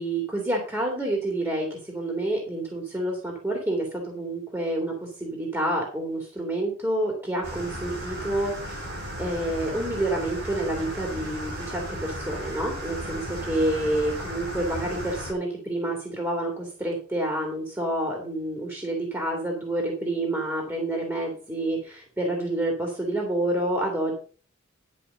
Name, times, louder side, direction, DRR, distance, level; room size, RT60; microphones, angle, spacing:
voice 1, 0.0-8.8 9.2-13.2 13.5-24.1, right 1 dB, 10° right, 0 dB, 2.5 m, -28 dB
sound 1, 7.4-15.3, equal, 55° right, 5.3 m, -35 dB
11.5 x 5.4 x 6.6 m, 0.39 s
head